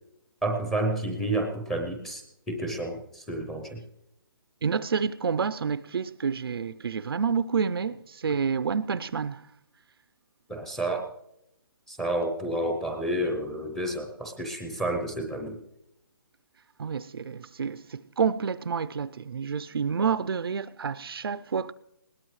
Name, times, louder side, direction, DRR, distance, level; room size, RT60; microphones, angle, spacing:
voice 1, 0.4-3.8 10.5-11.1 11.9-15.6, right 1 dB, ahead, 0.6 m, -30 dB
voice 2, 4.6-9.5 16.8-21.7, right 6 dB, 75° right, 0.5 m, -29 dB
20.0 x 18.0 x 3.2 m
hypercardioid pair, 170°, 13 cm